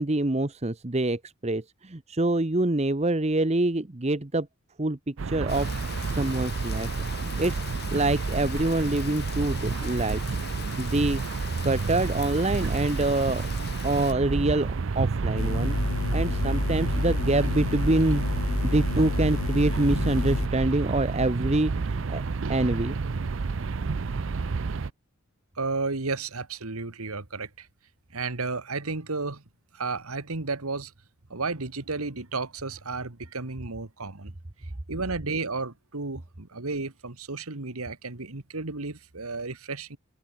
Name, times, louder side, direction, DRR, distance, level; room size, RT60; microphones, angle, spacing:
voice 1, 0.0-4.5 4.8-5.7 6.1-6.9 7.2-10.4 10.8-11.2 11.6-13.5 13.8-15.8 16.1-18.2 18.6-22.2 22.5-23.0, right 2 dB, 30° right, 1.0 m, -26 dB
sound 1, 5.2-24.9, right 4 dB, 60° right, 0.5 m, -30 dB
Rain, 5.5-14.1, left 5 dB, 50° left, 4.2 m, -40 dB
sound 2, 15.4-20.5, left 3 dB, 75° left, 0.9 m, -29 dB
voice 2, 25.6-27.7 28.1-29.4 29.7-30.9 31.3-34.3 34.6-40.0, right 3 dB, 90° right, 1.9 m, -33 dB
head